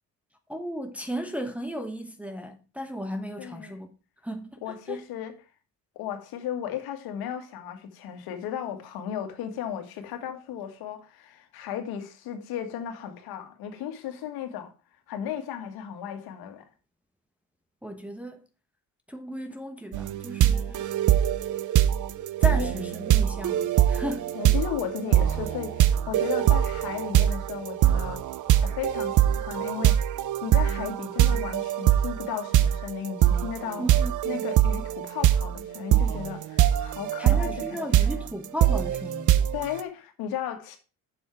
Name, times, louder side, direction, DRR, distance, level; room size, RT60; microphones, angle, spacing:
voice 1, 0.5-3.9 4.2-5.0 17.8-18.4 19.1-20.9 22.4-24.4 33.8-34.5 37.2-39.3, equal, 5° right, 1.0 m, -35 dB
voice 2, 3.4-3.8 4.6-5.3 6.0-14.7 15.1-16.7 22.6-22.7 24.3-28.3 28.6-30.1 30.4-33.9 34.3-38.1 39.5-40.8, left 9 dB, 85° left, 1.9 m, -35 dB
sound 1, 19.9-39.8, right 11 dB, 55° right, 0.7 m, -23 dB
7.8 x 7.0 x 4.7 m
cardioid pair, 110°, 36 cm